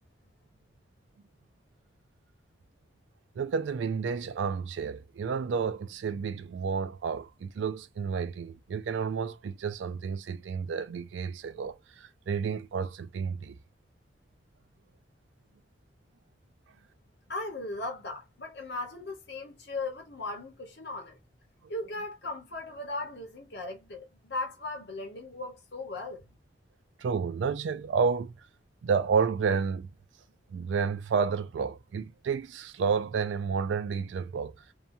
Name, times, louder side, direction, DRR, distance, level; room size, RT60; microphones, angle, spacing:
voice 1, 3.4-13.5 27.0-28.3 28.8-29.9 30.5-34.6, right 6 dB, 80° right, 0.3 m, -30 dB
voice 2, 17.3-21.2 21.7-26.2, left 2 dB, 60° left, 1.0 m, -37 dB
2.8 x 2.2 x 2.5 m
head